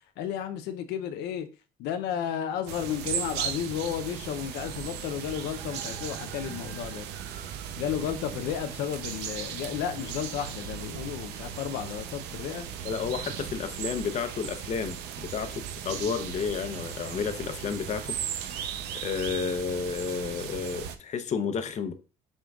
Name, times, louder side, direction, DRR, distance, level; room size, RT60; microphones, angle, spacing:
voice 1, 0.2-1.5 1.8-7.1 7.8-12.7, left 9 dB, 85° left, 0.5 m, -33 dB
sound 1, 2.7-21.0, right 9 dB, 90° right, 0.6 m, -37 dB
voice 2, 12.8-21.9, left 6 dB, 45° left, 0.7 m, -32 dB
6.2 x 3.7 x 2.3 m
cardioid pair, 110°, 17 cm